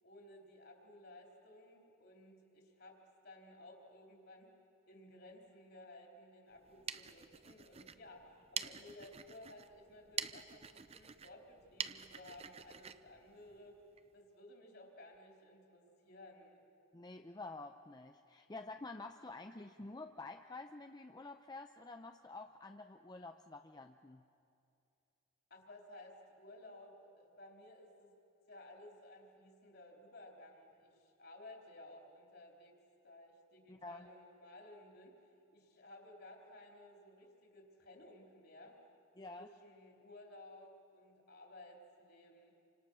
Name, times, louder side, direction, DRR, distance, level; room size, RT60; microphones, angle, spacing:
voice 1, 0.0-3.0 3.2-4.5 4.9-13.8 14.1-16.6 25.5-28.1 28.5-32.8 33.0-35.2 35.5-38.8 39.3-42.5, left 1 dB, 50° left, 1 dB, 3.8 m, -57 dB
sound 1, 6.6-14.1, right 8 dB, 30° right, 0.5 m, -47 dB
voice 2, 16.9-24.2 33.7-34.1 39.2-39.5, left 3 dB, 20° left, 6 dB, 0.5 m, -49 dB
28.5 x 25.5 x 6.3 m, 2.6 s
head